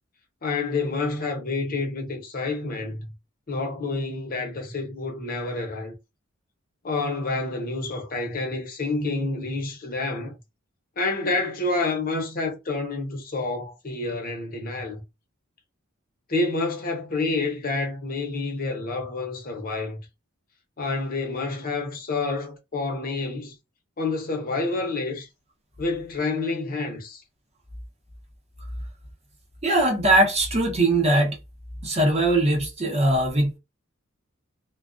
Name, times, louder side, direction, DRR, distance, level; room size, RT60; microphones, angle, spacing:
voice 1, 0.4-3.1 3.5-5.9 6.8-10.3 11.0-15.0 16.3-20.0 20.8-23.5 24.0-25.3 25.8-27.2, left 3 dB, 45° left, 0.7 m, -28 dB
voice 2, 29.6-31.4 31.8-33.6, right 1 dB, 30° right, 0.8 m, -21 dB
2.3 x 2.2 x 2.4 m
head